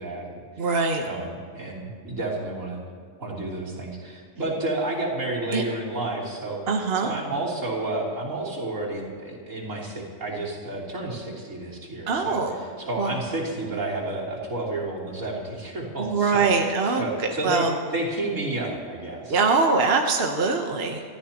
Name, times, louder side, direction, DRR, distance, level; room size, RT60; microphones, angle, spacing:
voice 1, 0.0-0.7 1.0-2.8 3.2-6.6 7.0-12.4 12.8-17.7 17.9-19.4, right 2 dB, 90° right, -5 dB, 3.8 m, -31 dB
voice 2, 0.6-1.0 5.5-5.6 6.7-7.1 12.1-12.6 13.0-13.2 16.0-17.7 19.3-21.0, right 4 dB, 55° right, 2 dB, 1.3 m, -23 dB
28.5 x 13.5 x 3.0 m, 2.2 s
omnidirectional pair, 1.3 m